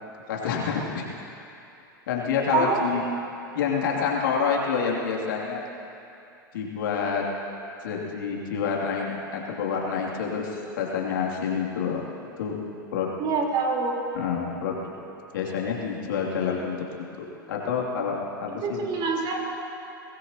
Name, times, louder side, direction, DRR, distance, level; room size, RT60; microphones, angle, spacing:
voice 1, 0.0-1.0 2.1-3.0 3.5-5.6 6.5-7.2 7.8-12.0 12.4-12.6 12.9-13.1 14.1-14.8 15.3-16.9 17.2-18.8, left 6 dB, 70° left, -2 dB, 2.8 m, -28 dB
voice 2, 2.5-3.0 13.2-14.0 18.6-19.4, right 4 dB, 40° right, -1 dB, 4.0 m, -26 dB
24.0 x 19.0 x 2.9 m, 2.7 s
hypercardioid pair, 95°, 11 cm